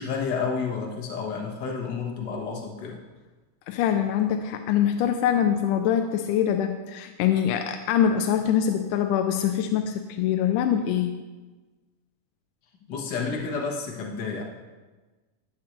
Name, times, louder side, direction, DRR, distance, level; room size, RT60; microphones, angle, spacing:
voice 1, 0.0-3.0 12.9-14.4, left 5 dB, 50° left, -1 dB, 1.3 m, -30 dB
voice 2, 3.7-11.1, left 9 dB, 85° left, 6 dB, 2.1 m, -24 dB
12.5 x 8.5 x 3.1 m, 1.3 s
omnidirectional pair, 3.6 m